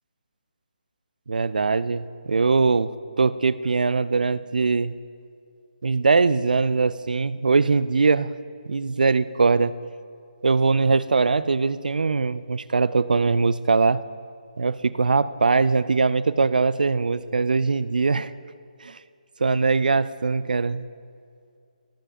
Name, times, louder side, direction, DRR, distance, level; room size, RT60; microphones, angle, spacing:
voice 1, 1.3-4.9 5.8-8.3 8.7-9.7 10.4-14.0 14.6-18.3 18.8-19.0 19.4-20.9, right 4 dB, 75° right, 16 dB, 0.4 m, -21 dB
21.5 x 7.4 x 2.6 m, 2.4 s
figure-of-eight pair, 150°, 5 cm